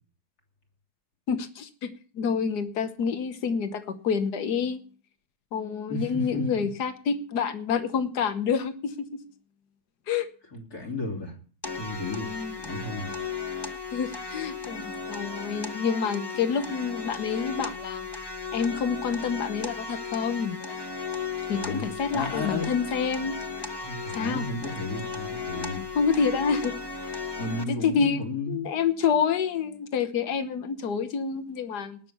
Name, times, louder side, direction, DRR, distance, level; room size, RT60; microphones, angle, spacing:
voice 1, 1.3-4.8 5.5-9.2 10.1-10.3 12.2-12.6 13.9-18.1 18.5-20.6 21.5-23.4 24.1-24.5 26.0-26.7 27.0-27.2 27.7-28.2 28.5-32.0, left 6 dB, 90° left, 10 dB, 1.7 m, -28 dB
voice 2, 5.9-6.5 10.5-11.4 11.7-12.3 12.6-13.1 21.5-22.7 23.8-25.8 27.3-28.7, left 2 dB, 70° left, 0 dB, 3.6 m, -33 dB
sound 1, 11.6-27.6, left 4 dB, 20° left, 1.0 m, -35 dB
19.0 x 6.4 x 6.9 m, 0.41 s
omnidirectional pair, 1.7 m